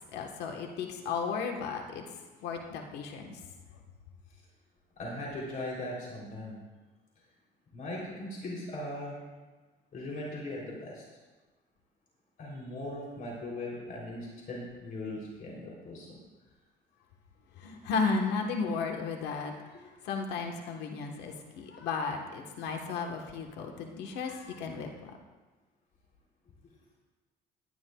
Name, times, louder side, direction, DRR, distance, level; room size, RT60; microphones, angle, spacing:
voice 1, 0.1-3.4 17.6-25.2, left 4 dB, 80° left, 2 dB, 1.3 m, -34 dB
voice 2, 5.0-6.6 7.7-9.2 9.9-11.0 12.4-16.2, left 1 dB, 55° left, -3 dB, 3.3 m, -39 dB
17.5 x 11.0 x 2.3 m, 1.2 s
cardioid pair, 110°, 17 cm